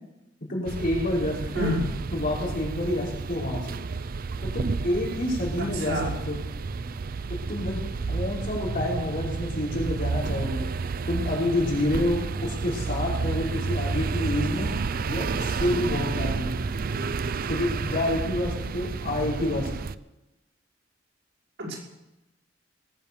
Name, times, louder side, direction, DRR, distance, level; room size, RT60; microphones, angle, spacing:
voice 1, 0.5-1.7 2.1-3.7 4.4-6.4 7.3-7.8 8.1-10.7 11.1-14.7 15.1-16.5 16.9-17.0 17.5-19.7, left 1 dB, 50° left, -4 dB, 5.2 m, -28 dB
sound 1, 0.6-19.9, right 4 dB, 50° right, 0.5 m, -30 dB
voice 2, 1.5-1.8 5.6-6.1 21.6-21.7, left 1 dB, 80° right, -4 dB, 5.7 m, -28 dB
19.5 x 8.6 x 7.0 m, 0.94 s
head